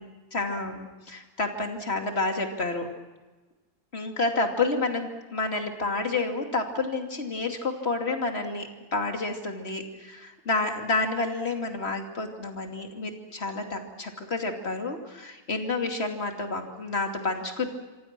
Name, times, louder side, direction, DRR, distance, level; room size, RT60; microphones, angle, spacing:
voice 1, 0.3-2.9 3.9-17.7, left 3 dB, 30° left, 4 dB, 2.9 m, -29 dB
27.0 x 26.0 x 6.1 m, 1.2 s
omnidirectional pair, 2.1 m